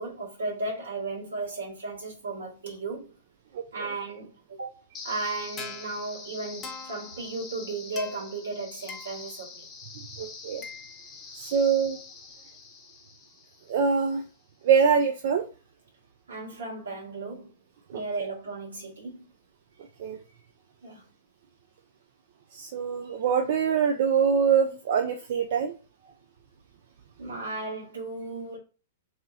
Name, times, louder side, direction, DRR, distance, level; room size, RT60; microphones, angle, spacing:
voice 1, 0.0-3.1 3.7-4.7 5.0-9.7 11.4-11.6 16.3-17.5 17.9-19.3 20.8-21.0 27.2-28.6, right 3 dB, 80° right, 1.4 m, -35 dB
voice 2, 3.5-3.9 10.2-10.6 11.3-12.0 13.7-14.2 14.6-15.4 17.9-18.0 20.0-20.2 22.5-25.7, right 6 dB, 60° right, 0.3 m, -24 dB
sound 1, 4.9-14.0, left 4 dB, 25° left, 0.7 m, -43 dB
2.7 x 2.7 x 2.4 m
hypercardioid pair, 110°, 0 cm